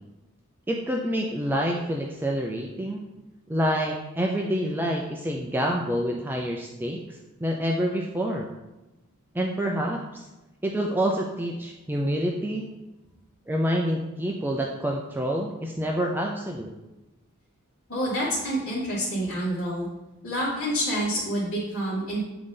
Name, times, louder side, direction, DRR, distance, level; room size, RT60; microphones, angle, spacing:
voice 1, 0.7-3.0 3.5-8.5 9.3-10.2 10.6-12.7 13.5-16.7, equal, 10° right, 0 dB, 0.4 m, -27 dB
voice 2, 17.9-19.9 20.2-22.2, equal, 65° left, -10 dB, 1.8 m, -27 dB
7.9 x 3.8 x 3.7 m, 1.1 s
head